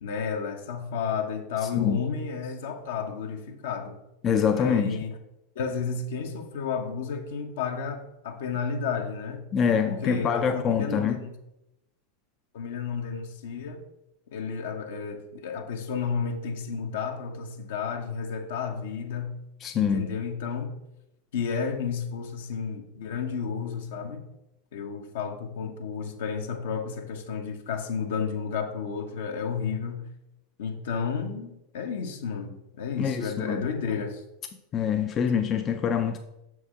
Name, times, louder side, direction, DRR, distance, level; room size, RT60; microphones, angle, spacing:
voice 1, 0.0-4.0 4.5-5.2 5.5-9.4 9.9-11.3 12.5-13.8 14.3-19.4 19.7-20.7 21.3-24.3 24.7-30.1 30.6-34.2, left 6 dB, 70° left, 5 dB, 0.8 m, -32 dB
voice 2, 4.2-5.0 9.5-11.2 19.6-20.2 33.0-33.7 34.7-36.2, left 7 dB, 35° left, 7 dB, 0.4 m, -25 dB
6.4 x 4.6 x 3.5 m, 0.89 s
hypercardioid pair, 90°, 0 cm